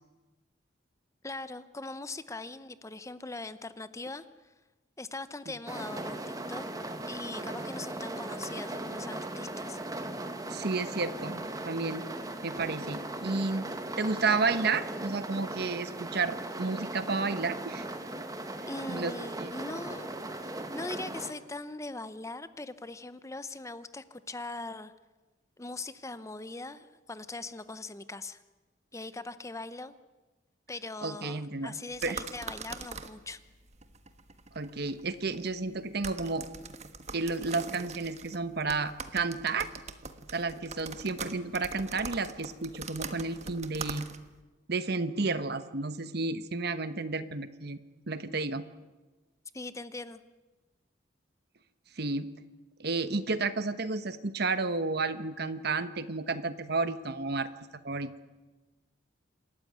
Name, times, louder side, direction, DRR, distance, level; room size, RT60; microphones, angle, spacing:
voice 1, 1.2-4.5 5.0-6.7 7.1-9.8 18.7-24.9 25.6-28.4 28.9-29.9 30.7-33.4 49.5-50.2, left 2 dB, 15° left, 13 dB, 0.7 m, -41 dB
sound 1, 5.7-21.3, right 1 dB, 20° right, 1.6 m, -38 dB
voice 2, 10.5-12.0 12.4-13.7 14.0-17.9 18.9-19.1 19.4-19.6 31.0-31.7 32.0-32.2 34.5-36.5 37.1-39.7 40.3-44.1 44.7-47.8 48.1-48.6 52.0-52.3 52.8-57.5 57.8-58.1, right 3 dB, 60° right, 12 dB, 1.1 m, -31 dB
sound 2, 31.9-44.4, right 5 dB, 35° right, 1.3 m, -43 dB
27.0 x 13.5 x 9.3 m, 1.2 s
head